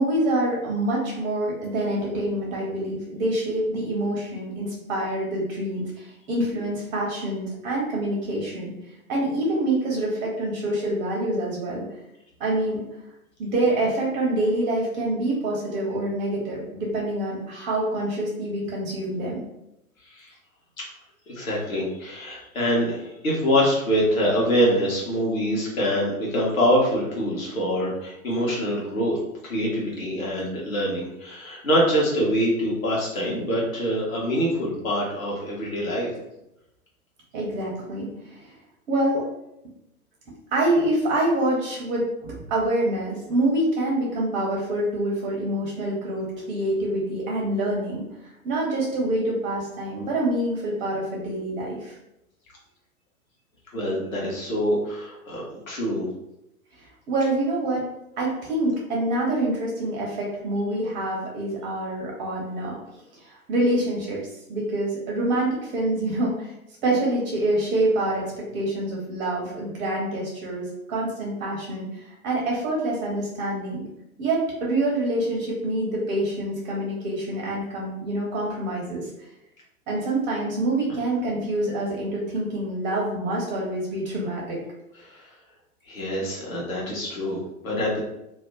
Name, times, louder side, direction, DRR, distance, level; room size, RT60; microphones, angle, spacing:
voice 1, 0.0-8.7 9.1-11.8 12.4-12.8 13.4-19.4 37.3-38.5 38.9-39.2 40.5-48.0 48.4-52.0 57.1-57.8 58.2-62.8 63.1-64.2 64.5-66.5 66.8-73.8 74.2-79.1 79.9-84.6, right 1 dB, 10° right, -3 dB, 0.4 m, -26 dB
voice 2, 21.3-29.2 29.4-36.1 53.7-56.1 85.1-85.3 85.9-88.0, equal, 65° left, -4 dB, 1.3 m, -25 dB
2.8 x 2.1 x 3.6 m, 0.85 s
figure-of-eight pair, 110°, 44 cm